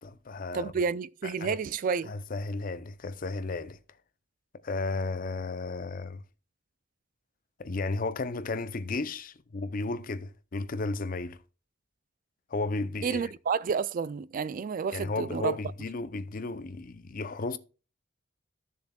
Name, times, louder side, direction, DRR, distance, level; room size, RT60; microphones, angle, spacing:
voice 1, 0.0-0.7 1.2-1.6 2.1-3.8 4.6-6.2 7.6-11.4 12.5-13.3 14.9-17.6, left 3 dB, 45° left, 0.6 m, -34 dB
voice 2, 0.5-2.1 13.0-15.5, right 5 dB, 45° right, 0.3 m, -30 dB
14.5 x 6.9 x 2.3 m
head